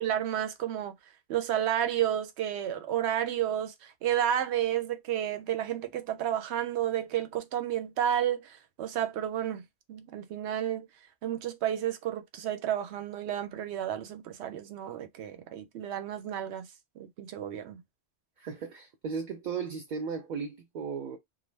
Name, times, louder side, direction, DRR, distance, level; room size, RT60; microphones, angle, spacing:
voice 1, 0.0-0.9 1.3-10.9 11.2-16.7 17.0-17.8, right 10 dB, 85° right, 0.9 m, -31 dB
voice 2, 18.4-21.2, right 5 dB, 55° right, 0.6 m, -36 dB
2.4 x 2.1 x 3.2 m
omnidirectional pair, 1.1 m